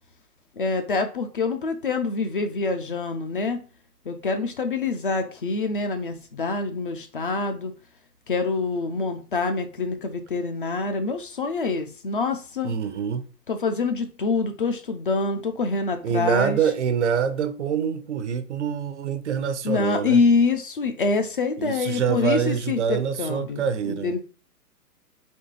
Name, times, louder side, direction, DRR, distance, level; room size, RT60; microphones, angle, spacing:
voice 1, 0.6-3.6 4.1-7.7 8.3-12.7 13.5-16.6 19.6-24.2, left 4 dB, 35° left, 0.4 m, -25 dB
voice 2, 12.6-13.2 16.0-20.2 21.6-24.1, right 7 dB, 50° right, 0.5 m, -25 dB
4.3 x 3.1 x 3.1 m
figure-of-eight pair, 130°, 48 cm